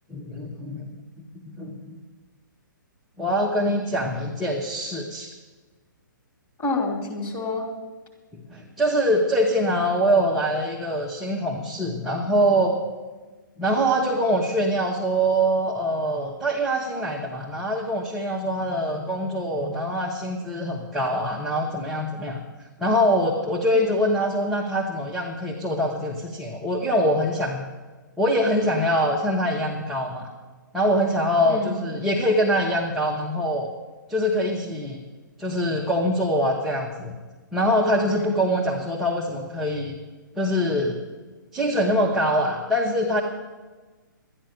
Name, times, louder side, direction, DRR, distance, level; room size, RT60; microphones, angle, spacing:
voice 1, 0.1-0.9 1.6-2.0 3.2-5.3 8.3-12.8 13.6-22.4 22.8-27.6 28.2-30.3 30.7-33.7 34.1-35.0 35.4-37.1 37.5-40.0 40.4-41.0 41.5-43.2, equal, ahead, -5 dB, 1.1 m, -24 dB
voice 2, 6.6-7.7 23.7-23.9 31.4-31.7 37.8-38.3, left 3 dB, 20° left, -2 dB, 2.8 m, -29 dB
12.5 x 10.0 x 6.7 m, 1.3 s
figure-of-eight pair, 125°, 11 cm